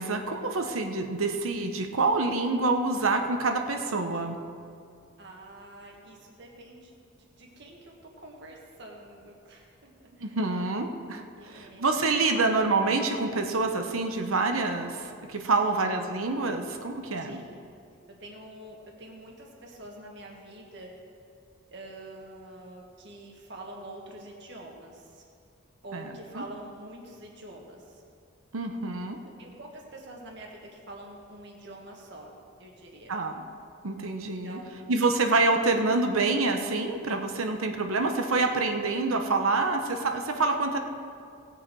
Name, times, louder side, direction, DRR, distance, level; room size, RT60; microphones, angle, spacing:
voice 1, 0.0-4.4 10.2-17.4 25.9-26.4 28.5-29.2 33.1-33.4 33.8-34.6 34.9-40.8, right 3 dB, 80° right, 5 dB, 1.0 m, -27 dB
voice 2, 5.2-6.9 7.2-10.4 11.3-12.6 15.6-16.0 17.2-17.7 18.2-21.0 21.7-25.2 25.8-28.0 29.4-32.3 32.6-33.1 34.4-35.0, right 1 dB, 55° right, 0 dB, 1.9 m, -46 dB
18.0 x 7.2 x 4.7 m, 2.3 s
head